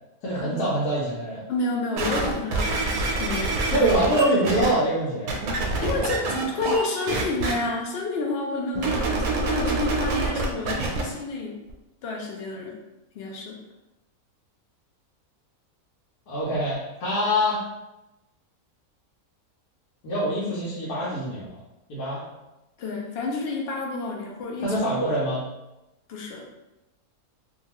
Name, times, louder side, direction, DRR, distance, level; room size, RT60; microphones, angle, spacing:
voice 1, 0.2-1.4 3.7-5.3 16.3-17.6 20.0-21.5 21.9-22.2 24.6-25.4, right 1 dB, 85° left, -8 dB, 1.2 m, -24 dB
voice 2, 1.5-3.9 5.8-11.6 12.0-12.8 13.1-13.6 22.8-24.8 26.1-26.4, left 3 dB, 70° left, 0 dB, 0.6 m, -30 dB
sound 1, 2.0-4.7 5.3-6.8 7.1-7.5 8.8-11.0 11.7-11.8, right 3 dB, 80° right, 1.0 m, -26 dB
2.8 x 2.2 x 2.9 m, 0.99 s
omnidirectional pair, 1.5 m